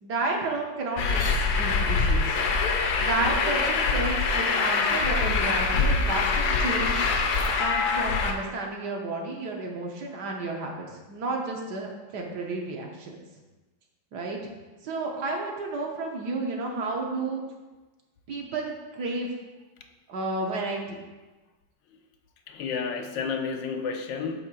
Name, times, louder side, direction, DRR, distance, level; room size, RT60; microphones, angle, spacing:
voice 1, 0.0-2.4 3.0-7.1 7.6-13.2 14.1-14.4 14.8-17.4 18.3-19.3 20.1-21.0, right 2 dB, 65° right, 0 dB, 1.6 m, -31 dB
Truck, 1.0-8.3, left 4 dB, 65° left, 1.2 m, -24 dB
voice 2, 22.5-24.4, left 5 dB, 85° left, 5 dB, 1.4 m, -31 dB
8.7 x 3.2 x 6.2 m, 1.2 s
omnidirectional pair, 2.0 m